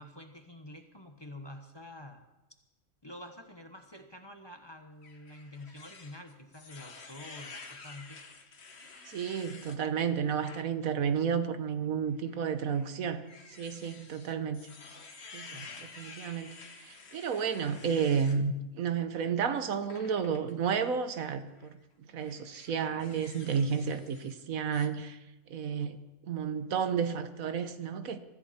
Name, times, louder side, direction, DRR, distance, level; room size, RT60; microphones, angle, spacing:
voice 1, 0.0-2.3 3.0-8.2 15.5-15.8, left 1 dB, 20° left, 1.1 m, -48 dB
sound 1, 5.0-9.8 10.3-10.6 11.1-11.2 12.3-18.4 19.9-20.5 21.5-21.7 22.2-24.4 24.7-24.9, left 4 dB, 50° left, 1.5 m, -50 dB
voice 2, 9.1-13.2 13.6-14.6 15.3-21.7 22.1-25.2 25.5-26.0 26.3-28.2, right 6 dB, 80° right, 1.4 m, -32 dB
23.5 x 14.0 x 4.3 m
omnidirectional pair, 1.4 m